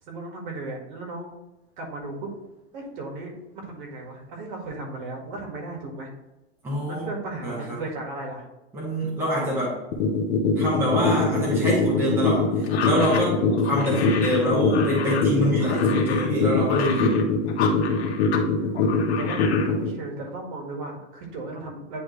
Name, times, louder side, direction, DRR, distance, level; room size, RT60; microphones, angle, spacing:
voice 1, 0.1-1.3 1.8-2.3 2.7-6.1 6.9-8.5 18.6-22.0, right 2 dB, 45° right, 1 dB, 1.9 m, -36 dB
voice 2, 6.6-7.0 7.4-7.8 8.7-9.8 10.5-13.4 13.7-17.3, equal, 5° right, -6 dB, 1.1 m, -25 dB
sound 1, 9.9-19.9, left 6 dB, 30° left, 0.8 m, -22 dB
sound 2, 12.6-18.5 18.7-19.7, left 7 dB, 75° left, 1.5 m, -32 dB
9.9 x 3.4 x 3.2 m, 1.0 s
supercardioid pair, 175°, 33 cm